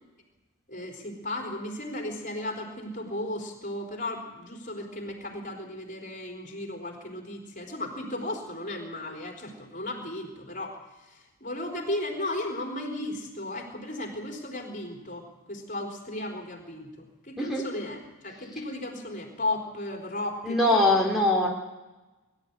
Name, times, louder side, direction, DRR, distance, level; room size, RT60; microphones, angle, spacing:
voice 1, 0.7-20.9, left 1 dB, 35° left, 2 dB, 4.2 m, -35 dB
voice 2, 20.5-21.5, left 1 dB, ahead, -1 dB, 2.6 m, -22 dB
23.5 x 13.5 x 9.8 m, 1.1 s
head